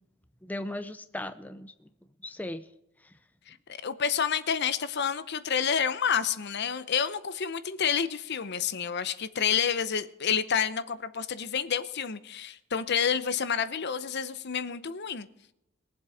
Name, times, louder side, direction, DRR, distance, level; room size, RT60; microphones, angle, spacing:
voice 1, 0.4-1.9 2.2-2.7 3.0-3.1, left 1 dB, 10° left, 0.6 m, -37 dB
voice 2, 3.8-15.3, left 7 dB, 55° left, 0.8 m, -29 dB
21.5 x 7.7 x 4.9 m
head